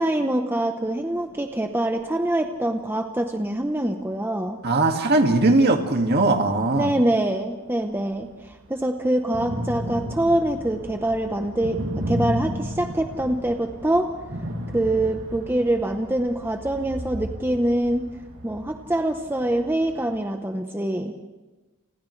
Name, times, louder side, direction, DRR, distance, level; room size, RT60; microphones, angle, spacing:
voice 1, 0.0-4.6 6.7-8.3 8.7-11.8 12.0-14.1 14.7-18.1 18.4-21.1, right 1 dB, 10° right, 4 dB, 0.9 m, -24 dB
sound 1, 1.3-1.4 2.0-2.1 3.0-3.1 3.8-3.9 5.8-5.9 6.4-6.5 7.5-7.6 7.9-20.2, equal, 70° right, 2.8 m, -34 dB
voice 2, 4.6-6.9, right 2 dB, 50° right, 4 dB, 2.1 m, -19 dB
29.5 x 29.0 x 3.3 m, 1.2 s
head